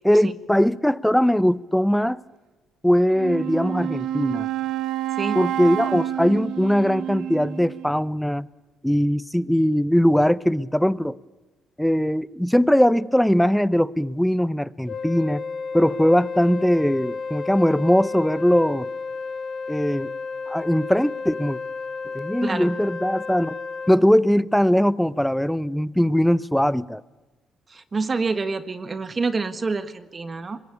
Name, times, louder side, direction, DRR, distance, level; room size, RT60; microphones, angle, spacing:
voice 1, 0.0-2.2 2.8-4.5 5.3-8.5 8.8-11.2 11.8-15.4 15.7-18.9 19.7-20.1 20.5-21.6 22.1-23.6 23.9-27.0, equal, 5° left, 0.7 m, -20 dB
Wind instrument woodwind instrument, 3.1-8.0, right 11 dB, 85° right, 1.5 m, -29 dB
Wind instrument woodwind instrument 2, 14.9-24.0, left 4 dB, 55° left, 1.8 m, -32 dB
voice 2, 22.4-22.7 27.7-30.6, right 4 dB, 35° right, 1.6 m, -27 dB
24.5 x 21.0 x 8.5 m
cardioid pair, 90°, 0 cm